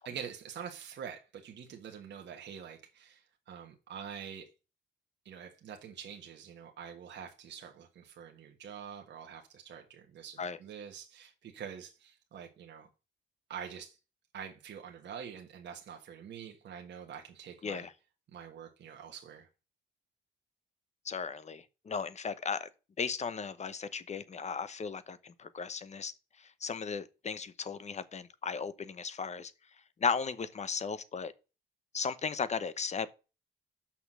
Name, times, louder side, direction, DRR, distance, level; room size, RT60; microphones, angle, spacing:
voice 1, 0.0-4.5 5.2-12.9 13.5-14.0 14.3-17.9 18.3-19.5, right 7 dB, 60° right, 1.4 m, -46 dB
voice 2, 21.0-22.7 23.0-26.1 26.6-29.5 30.0-31.3 31.9-33.2, left 5 dB, 35° left, 0.8 m, -36 dB
6.1 x 5.9 x 6.1 m
cardioid pair, 90°, 20 cm